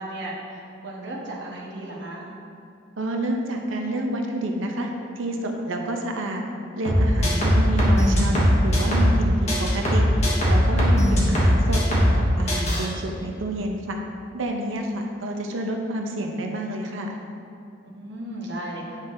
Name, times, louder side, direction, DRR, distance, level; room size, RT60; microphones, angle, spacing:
voice 1, 0.0-2.3 11.0-11.2 14.6-14.8 17.8-19.0, right 1 dB, 60° right, -3 dB, 1.2 m, -35 dB
voice 2, 3.0-4.9 5.2-6.4 6.7-10.1 10.4-11.8 12.1-14.0 14.3-17.2, right 1 dB, 85° right, 2 dB, 0.7 m, -29 dB
sound 1, 6.9-9.2 9.5-12.2 12.5-12.9, equal, 35° left, 1.3 m, -19 dB
8.9 x 5.6 x 2.6 m, 2.6 s
head